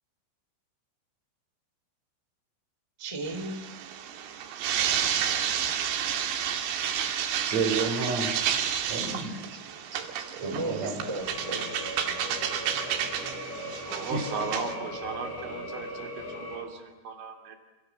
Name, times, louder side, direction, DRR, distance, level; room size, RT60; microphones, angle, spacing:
voice 1, 3.0-3.8 10.4-11.9, right 2 dB, 5° right, 2.6 m, -35 dB
sound 1, 3.3-14.7, right 9 dB, 85° right, 4.8 m, -31 dB
voice 2, 6.1-6.7 7.4-8.4 8.9-9.6 10.2-11.1 14.1-14.5, right 4 dB, 35° right, 4.9 m, -32 dB
sound 2, 11.2-16.6, left 1 dB, 60° left, 9.5 m, -38 dB
voice 3, 13.9-17.6, right 5 dB, 65° right, 4.8 m, -36 dB
28.5 x 27.5 x 7.4 m
omnidirectional pair, 5.9 m